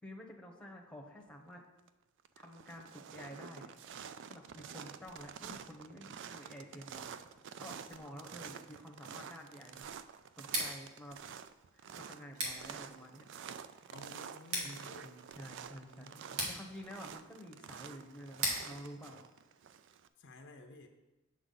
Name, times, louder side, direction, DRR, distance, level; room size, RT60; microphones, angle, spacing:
voice 1, 0.0-1.6 2.4-3.7 4.3-7.2 7.5-9.9 10.4-11.2 11.7-13.3 14.6-19.2, equal, 5° left, 0 dB, 0.9 m, -50 dB
sound 1, 1.5-1.9 2.2-20.1, right 7 dB, 55° right, 0.3 m, -49 dB
Scissors, 10.4-20.2, right 1 dB, 90° right, 1.9 m, -43 dB
voice 2, 13.9-15.3 15.7-16.7 20.2-20.9, left 2 dB, 55° left, 5 dB, 0.6 m, -54 dB
8.2 x 5.8 x 4.0 m, 1.0 s
head